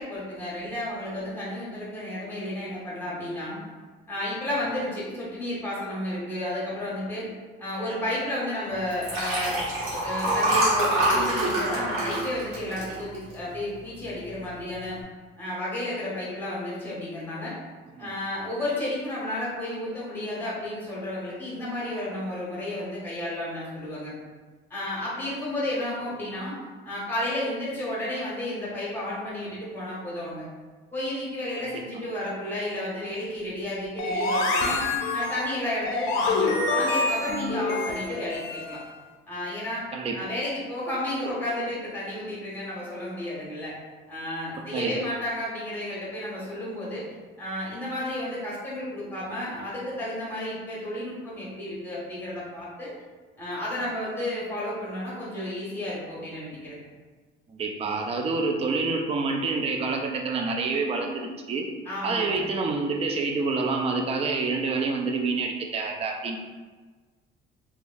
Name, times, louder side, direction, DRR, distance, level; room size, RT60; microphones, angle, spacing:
voice 1, 0.0-3.6 4.1-7.3 7.6-9.6 10.0-15.0 15.4-17.6 18.0-24.1 24.7-26.6 26.8-30.5 30.9-34.8 35.1-38.8 39.3-39.8 40.1-43.7 44.1-47.1 47.4-52.9 53.4-56.8 61.8-62.5, left 1 dB, 10° left, -8 dB, 1.4 m, -32 dB
Liquid, 8.9-13.5 14.0-14.3 14.6-14.7, right 1 dB, 85° right, 1.1 m, -25 dB
sound 1, 34.0-38.9, left 3 dB, 75° left, 0.5 m, -27 dB
voice 2, 44.6-45.0 57.5-61.7 62.0-66.4, right 4 dB, 30° right, 2 dB, 0.4 m, -27 dB
3.2 x 2.3 x 2.6 m, 1.3 s
cardioid pair, 115°, 20 cm